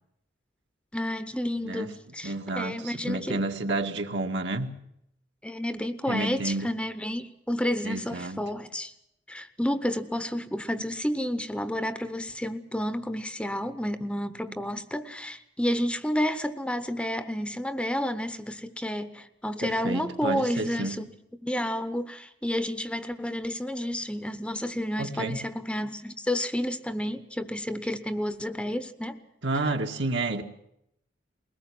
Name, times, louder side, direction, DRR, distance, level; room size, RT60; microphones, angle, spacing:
voice 1, 0.9-3.4 5.4-8.9 9.3-21.1 21.4-29.2, equal, 5° left, 11 dB, 0.9 m, -30 dB
voice 2, 1.6-1.9 2.2-4.7 6.1-6.7 7.8-8.4 14.5-14.6 19.6-21.0 25.0-25.4 29.4-30.4, right 2 dB, 70° right, 4 dB, 2.0 m, -30 dB
21.5 x 19.0 x 7.8 m, 0.78 s
head